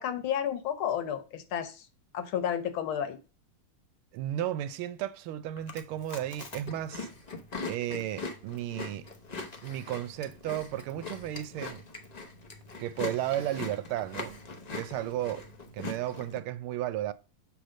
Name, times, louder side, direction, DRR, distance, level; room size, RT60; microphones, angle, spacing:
voice 1, 0.0-1.9 2.1-3.2, left 9 dB, 75° left, 1.8 m, -31 dB
voice 2, 4.1-7.1 7.7-9.1 9.6-11.8 12.8-14.4 14.7-15.5 15.7-17.1, right 12 dB, 85° right, 1.5 m, -34 dB
Chewing mastication, 5.6-16.4, left 3 dB, 55° left, 0.4 m, -41 dB
7.6 x 3.5 x 6.3 m
omnidirectional pair, 2.3 m